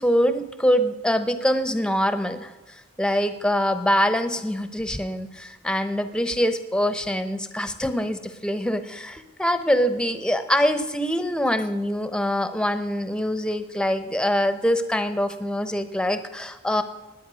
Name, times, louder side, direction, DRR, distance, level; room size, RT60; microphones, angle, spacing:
voice 1, 0.0-16.8, equal, 5° left, 10 dB, 0.9 m, -24 dB
20.0 x 8.9 x 6.3 m, 1.2 s
head